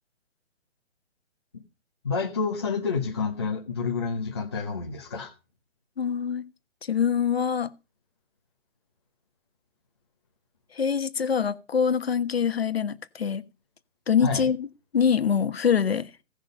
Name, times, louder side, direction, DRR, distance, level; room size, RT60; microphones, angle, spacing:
voice 1, 2.0-5.3 14.2-14.5, left 5 dB, 20° left, 0.9 m, -29 dB
voice 2, 6.0-6.4 6.9-7.7 10.7-13.4 14.1-14.6 14.9-16.1, left 7 dB, 50° left, 1.3 m, -24 dB
17.0 x 6.2 x 5.3 m
hypercardioid pair, 180°, 38 cm